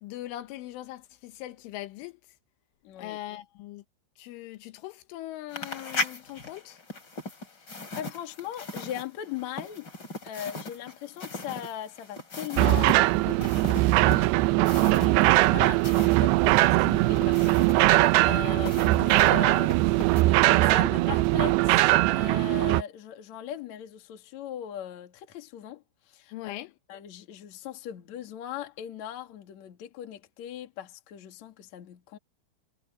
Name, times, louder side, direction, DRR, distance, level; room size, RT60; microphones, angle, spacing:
voice 1, 0.0-2.2 3.0-3.8 4.2-6.8 14.0-14.4 26.3-26.7, left 15 dB, 85° left, 3.7 m, -40 dB
voice 2, 2.8-3.2 7.9-9.9 10.2-13.4 14.6-18.0 18.3-26.6 26.9-32.2, left 10 dB, 50° left, 2.6 m, -39 dB
sound 1, 5.5-16.2 16.4-20.2, left 2 dB, 25° left, 3.9 m, -38 dB
sound 2, 12.6-22.8, right 19 dB, 85° right, 2.4 m, -21 dB
omnidirectional pair, 5.4 m